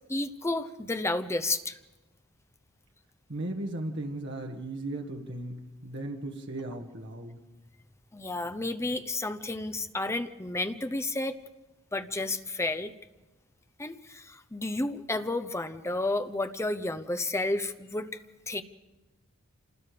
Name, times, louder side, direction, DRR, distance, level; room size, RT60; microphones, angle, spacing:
voice 1, 0.1-1.8 8.1-11.3 11.9-12.9 13.8-18.6, left 2 dB, 15° left, 10 dB, 0.8 m, -31 dB
voice 2, 3.3-7.4, right 1 dB, 60° right, 2 dB, 1.8 m, -36 dB
27.5 x 20.5 x 5.1 m, 1.1 s
head